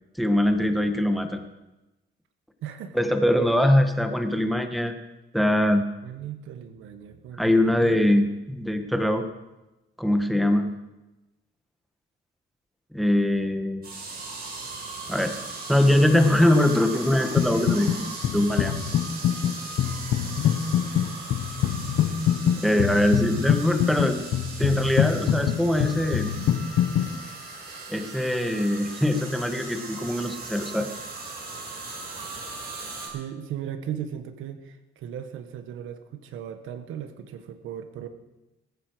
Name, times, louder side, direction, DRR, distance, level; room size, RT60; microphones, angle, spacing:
voice 1, 0.2-1.4 2.9-5.0 5.3-5.8 7.3-9.2 10.0-10.7 12.9-13.8 15.1-15.3 15.7-18.1 18.3-18.7 22.6-24.2 24.6-26.3 27.9-30.9, left 1 dB, ahead, 6 dB, 1.6 m, -22 dB
voice 2, 2.6-3.0 6.0-8.1 33.1-38.1, right 9 dB, 90° right, 8 dB, 1.3 m, -37 dB
sound 1, 13.8-33.1, right 3 dB, 50° right, 5.8 m, -38 dB
sound 2, 17.4-18.0 18.2-27.1, left 10 dB, 80° left, 1.0 m, -25 dB
20.0 x 9.7 x 4.9 m, 1.0 s
cardioid pair, 90°, 20 cm